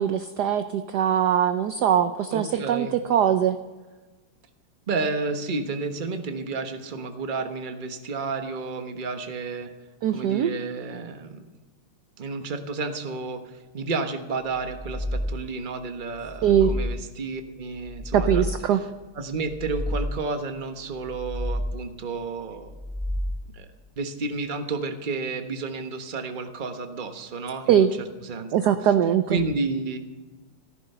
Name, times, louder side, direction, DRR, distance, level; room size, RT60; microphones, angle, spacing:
voice 1, 0.0-3.6 10.0-10.5 16.4-16.7 18.1-18.8 27.7-27.9 28.5-29.4, right 9 dB, 70° right, 10 dB, 1.0 m, -21 dB
voice 2, 2.3-3.0 4.9-9.7 10.1-11.5 12.2-18.4 19.1-22.7 23.5-23.7 24.0-28.7 29.3-30.0, right 3 dB, 30° right, 6 dB, 1.0 m, -31 dB
sound 1, 14.6-15.7 16.2-17.3 17.8-18.9 19.4-20.5 21.0-22.0 22.6-23.7, equal, 15° left, 1.2 m, -31 dB
15.0 x 14.0 x 5.5 m, 1.2 s
omnidirectional pair, 2.4 m